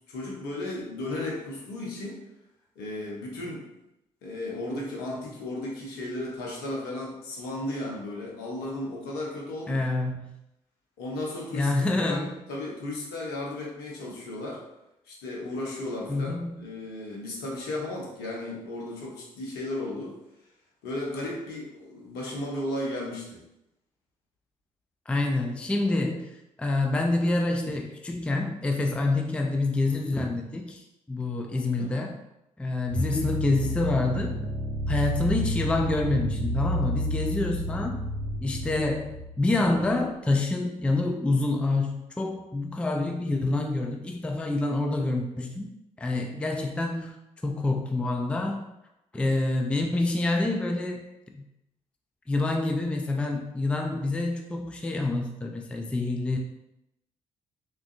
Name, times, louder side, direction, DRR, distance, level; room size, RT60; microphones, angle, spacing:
voice 1, 0.1-2.2 2.8-3.7 4.2-9.8 11.0-14.6 15.0-20.2 20.8-23.4 31.8-31.9, left 1 dB, 65° left, -2 dB, 0.8 m, -35 dB
voice 2, 9.7-10.3 11.5-12.3 16.1-16.6 25.1-26.3 26.6-32.1 32.6-34.5 34.9-38.0 38.4-45.7 46.0-47.2 47.4-48.6 49.1-51.0 51.3-51.4 52.3-56.4, left 2 dB, 5° left, 2 dB, 0.4 m, -27 dB
sound 1, 32.9-40.1, equal, 25° right, 1.0 m, -31 dB
3.5 x 2.3 x 2.5 m, 0.87 s
figure-of-eight pair, 40°, 18 cm